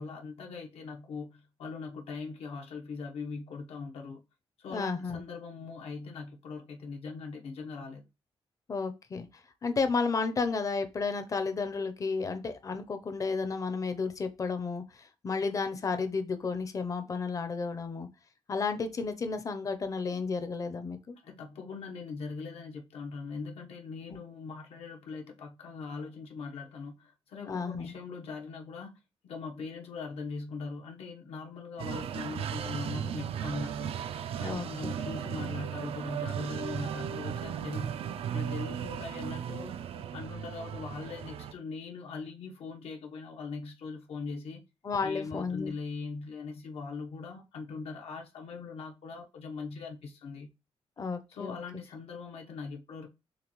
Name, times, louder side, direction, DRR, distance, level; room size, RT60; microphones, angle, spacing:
voice 1, 0.0-4.2 4.6-8.0 21.2-34.1 34.3-38.0 38.3-39.8 40.1-44.6 45.0-50.5 51.3-53.1, left 4 dB, 80° left, 1.0 m, -41 dB
voice 2, 4.7-5.2 8.7-9.3 9.6-18.1 18.5-21.2 27.4-27.9 34.4-34.9 44.8-45.7 51.0-51.6, left 4 dB, 35° left, 0.6 m, -32 dB
sound 1, 31.8-41.5, right 8 dB, 75° right, 0.4 m, -36 dB
6.7 x 2.3 x 3.1 m
wide cardioid pair, 145°, 10 cm